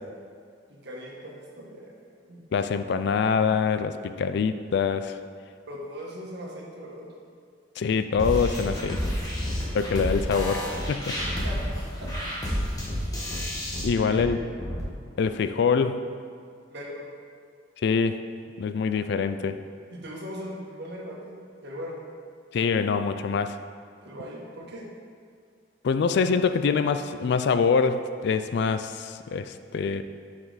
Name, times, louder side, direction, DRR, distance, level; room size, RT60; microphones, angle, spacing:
voice 1, 0.7-1.9 2.2-2.4 5.7-7.1 9.4-9.5 11.2-11.6 12.0-12.1 13.9-14.4 16.7-17.1 19.9-22.0 24.0-24.9, equal, 60° right, -2 dB, 1.4 m, -39 dB
voice 2, 2.5-5.2 7.8-9.0 9.7-11.1 13.8-14.4 15.2-16.0 17.8-18.2 18.6-19.6 22.5-23.6 25.8-30.0, left 5 dB, 60° left, 10 dB, 0.4 m, -25 dB
sound 1, 8.2-8.3 8.6-8.7 9.0-9.1 9.4-9.6 9.9-10.0 10.3-10.4 10.7-10.9 11.2-11.7 12.0-12.1 12.4-12.6 12.9-13.0 13.3-13.4 13.7-13.9 14.2-14.3 14.6-14.8, equal, 35° left, 1.8 m, -35 dB
sound 2, 8.2-13.8, equal, 20° left, 1.5 m, -30 dB
9.4 x 5.0 x 4.0 m, 2.1 s
head